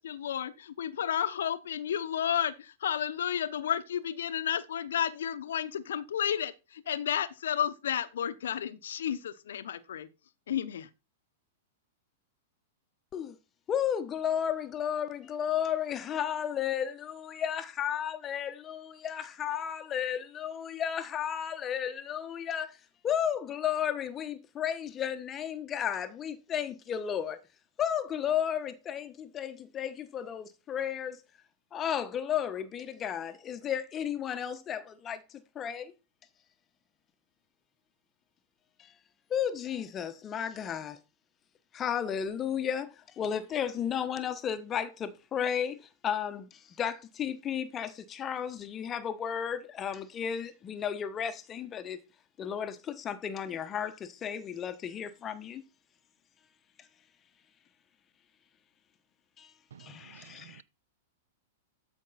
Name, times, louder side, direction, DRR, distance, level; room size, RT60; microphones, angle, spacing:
voice 1, 0.0-10.1 10.5-10.9, left 9 dB, 75° left, 0.9 m, -32 dB
voice 2, 13.7-22.8 23.0-27.4 27.8-31.2 31.7-35.2 35.5-35.9 38.8-38.9 39.3-41.0 41.7-52.0 52.4-55.6 59.4-59.5 59.8-60.6, left 9 dB, 25° left, 1.0 m, -33 dB
voice 3, 60.1-60.6, right 8 dB, 75° right, 0.5 m, -52 dB
12.5 x 5.3 x 4.1 m
hypercardioid pair, 115°, 0 cm